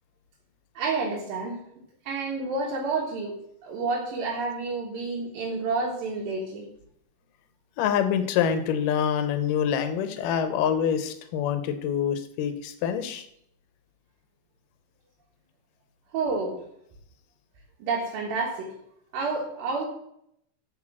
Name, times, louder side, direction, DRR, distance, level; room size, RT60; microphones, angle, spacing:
voice 1, 0.7-1.6 2.0-6.7 16.1-16.6 17.8-18.7 19.1-19.9, right 3 dB, 90° right, -3 dB, 3.4 m, -29 dB
voice 2, 7.8-13.3, left 8 dB, 80° left, 10 dB, 2.4 m, -26 dB
10.0 x 4.7 x 6.1 m, 0.72 s
omnidirectional pair, 3.9 m